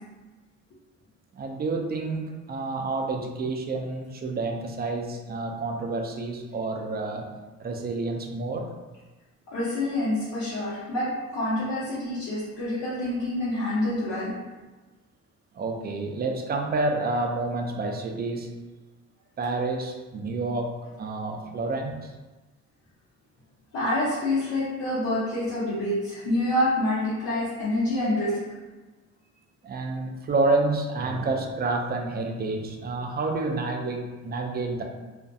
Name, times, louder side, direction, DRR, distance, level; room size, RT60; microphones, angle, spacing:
voice 1, 1.3-7.3 7.6-8.7 15.5-18.5 19.4-20.7 21.0-22.1 29.6-34.8, right 3 dB, 30° right, 2 dB, 0.4 m, -29 dB
voice 2, 9.5-14.4 23.7-28.4, left 1 dB, 70° left, -12 dB, 0.9 m, -27 dB
2.4 x 2.2 x 2.6 m, 1.2 s
cardioid pair, 90°, 30 cm